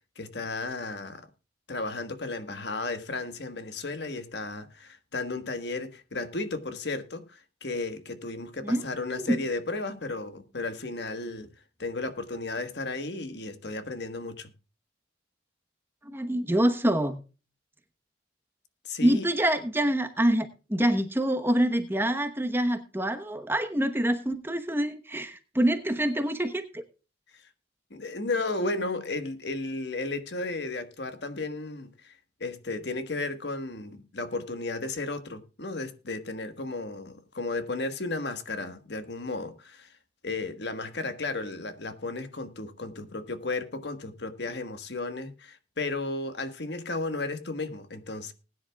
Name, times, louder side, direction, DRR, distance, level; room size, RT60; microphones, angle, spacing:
voice 1, 0.2-1.2 1.7-11.5 11.8-14.5 18.8-19.3 27.9-32.1 32.4-39.9 40.2-48.3, left 3 dB, 65° left, 1.4 m, -34 dB
voice 2, 16.1-17.2 19.0-26.8, right 1 dB, 10° right, 1.0 m, -26 dB
20.0 x 10.0 x 2.3 m
head